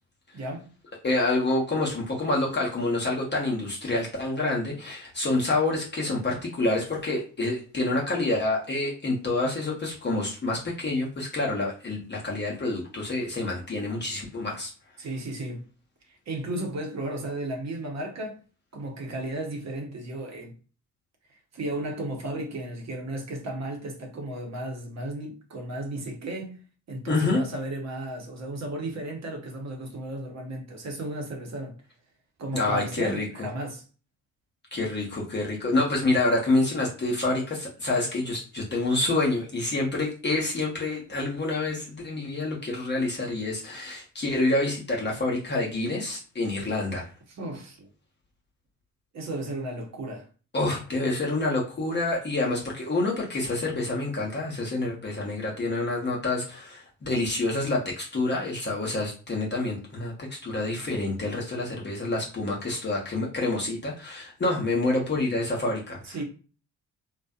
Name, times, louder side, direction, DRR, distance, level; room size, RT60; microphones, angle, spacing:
voice 1, 0.3-0.7 15.0-15.6 16.3-18.4 18.7-20.5 21.5-26.6 26.9-31.7 32.4-33.8 47.3-47.9 49.1-50.3 66.0-66.2, right 1 dB, 40° right, 1.0 m, -34 dB
voice 2, 1.0-14.7 27.1-27.4 32.5-33.3 34.7-47.1 50.5-66.2, left 2 dB, 25° left, 0.9 m, -27 dB
2.5 x 2.2 x 2.4 m
figure-of-eight pair, 45°, 41 cm